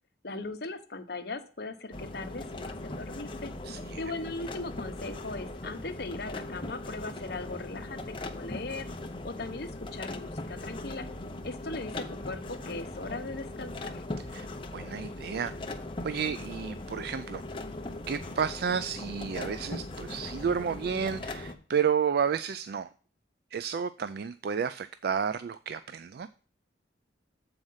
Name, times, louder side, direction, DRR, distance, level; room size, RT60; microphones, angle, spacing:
voice 1, 0.2-3.5 4.0-8.9 9.2-11.0 11.4-14.0, left 3 dB, 55° left, 0.9 m, -39 dB
sound 1, 1.9-21.5, left 2 dB, 25° left, 0.8 m, -39 dB
voice 2, 3.6-4.0 14.3-14.5 14.7-15.5 16.0-17.4 18.1-22.9 23.5-26.3, right 7 dB, 55° right, 0.3 m, -31 dB
7.6 x 4.8 x 5.5 m
head